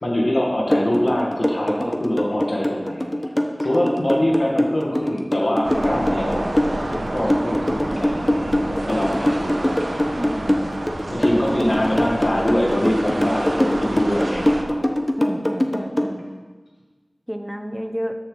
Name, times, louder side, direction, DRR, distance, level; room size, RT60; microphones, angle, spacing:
voice 1, 0.0-3.1 3.6-6.5 7.1-9.8 11.1-14.8, left 1 dB, 65° left, -3 dB, 1.8 m, -23 dB
sound 1, 0.7-16.1, left 1 dB, 20° left, 1.0 m, -22 dB
sound 2, 5.6-14.6, right 1 dB, 80° right, 1.1 m, -29 dB
voice 2, 10.2-10.7 15.2-16.2 17.3-18.2, equal, 5° right, 5 dB, 1.0 m, -31 dB
13.0 x 6.9 x 3.9 m, 1.4 s
wide cardioid pair, 50°, 0 cm